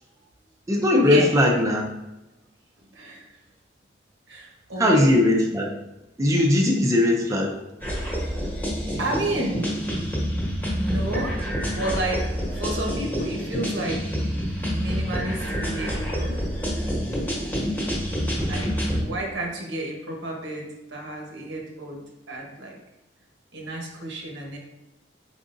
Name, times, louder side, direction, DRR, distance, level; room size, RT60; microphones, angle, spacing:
voice 1, 0.7-1.9 4.8-5.7 6.2-7.6 18.4-18.5, left 1 dB, 15° right, 0 dB, 0.4 m, -19 dB
voice 2, 2.9-3.4 4.3-5.2 9.0-9.7 10.7-11.4 11.7-14.1 14.6-16.3 18.5-22.0 22.3-22.8 23.5-24.6, right 1 dB, 80° right, 0 dB, 1.0 m, -31 dB
sound 1, 7.8-19.0, equal, 10° left, 1.0 m, -27 dB
4.7 x 3.6 x 2.6 m, 0.99 s
head